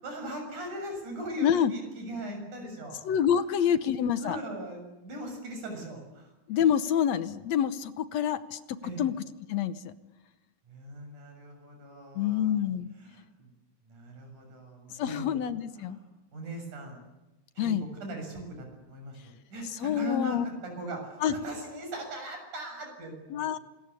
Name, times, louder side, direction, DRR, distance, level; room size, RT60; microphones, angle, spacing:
voice 1, 0.0-3.0 4.2-6.3 8.8-9.0 10.7-12.5 13.0-13.5 13.9-15.3 15.7-17.0 17.6-17.7 18.0-23.4, equal, 90° right, 3 dB, 8.6 m, -39 dB
voice 2, 1.4-1.7 3.0-4.4 6.5-9.2 9.5-9.9 12.2-12.9 14.9-16.0 17.6-17.8 19.7-20.5 21.2-21.4 23.3-23.6, left 9 dB, 70° left, 13 dB, 2.1 m, -27 dB
27.0 x 21.5 x 8.5 m, 1.0 s
omnidirectional pair, 3.4 m